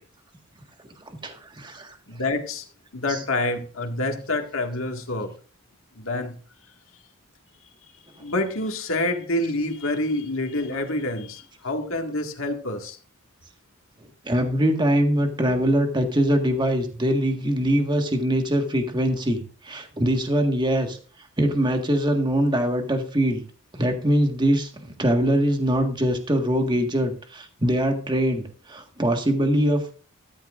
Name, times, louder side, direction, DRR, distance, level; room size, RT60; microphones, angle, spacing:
voice 1, 1.0-2.0 3.1-3.2 14.2-21.0 21.4-23.4 23.8-29.9, equal, 20° right, 4 dB, 1.7 m, -23 dB
voice 2, 2.1-2.7 2.9-5.4 6.0-6.4 7.6-13.0, left 2 dB, 75° left, 3 dB, 2.0 m, -27 dB
13.5 x 13.5 x 2.6 m, 0.39 s
head